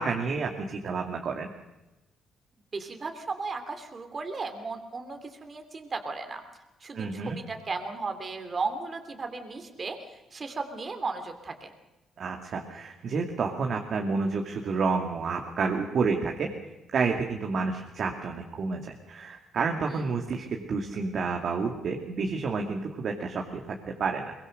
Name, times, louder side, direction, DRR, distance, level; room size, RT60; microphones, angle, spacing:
voice 1, 0.0-1.5 6.9-7.4 12.2-16.5 16.9-24.3, right 4 dB, 55° right, 2 dB, 2.4 m, -30 dB
voice 2, 2.7-6.4 6.8-10.0 10.3-11.7 19.9-20.0, right 4 dB, 35° right, 6 dB, 2.8 m, -35 dB
23.0 x 21.5 x 6.6 m, 1.0 s
cardioid pair, 90°, 0 cm